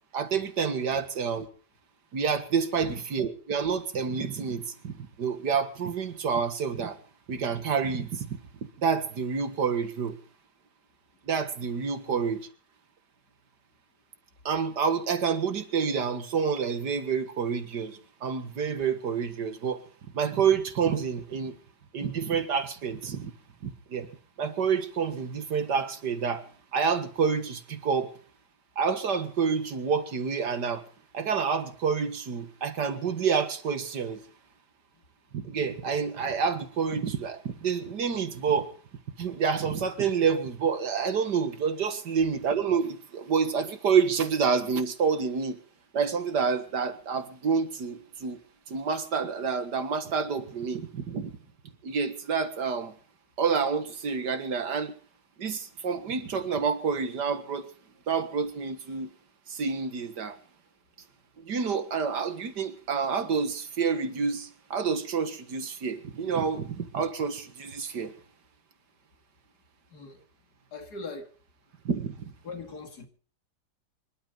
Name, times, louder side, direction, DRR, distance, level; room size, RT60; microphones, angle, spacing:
voice 1, 0.1-1.5 2.1-7.0 7.3-8.4 8.8-10.2 11.3-12.4 14.5-19.8 20.1-21.6 21.9-23.3 23.6-24.1 24.4-26.5 26.7-28.1 28.8-30.8 31.1-34.2 35.3-38.7 39.2-45.6 45.9-48.4 48.7-51.3 51.8-52.9 53.4-54.9 55.4-57.7 58.1-59.1 59.5-60.4 61.5-68.1 71.9-72.2, right 6 dB, 85° right, 2.3 m, -28 dB
voice 2, 70.7-71.3 72.4-73.1, left 3 dB, 70° left, 3.1 m, -40 dB
25.5 x 12.5 x 3.9 m
omnidirectional pair, 1.8 m